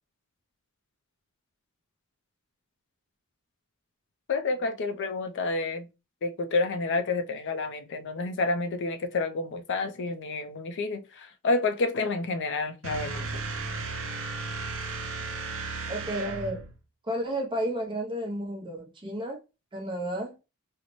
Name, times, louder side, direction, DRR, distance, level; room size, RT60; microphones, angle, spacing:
voice 1, 4.3-5.9 6.2-13.4, left 3 dB, 55° left, 0.4 m, -29 dB
sound 1, 12.8-16.8, right 3 dB, 60° right, 0.6 m, -35 dB
voice 2, 15.9-16.6 17.1-19.4 19.7-20.3, right 1 dB, 20° right, 0.6 m, -32 dB
4.0 x 2.0 x 3.0 m
head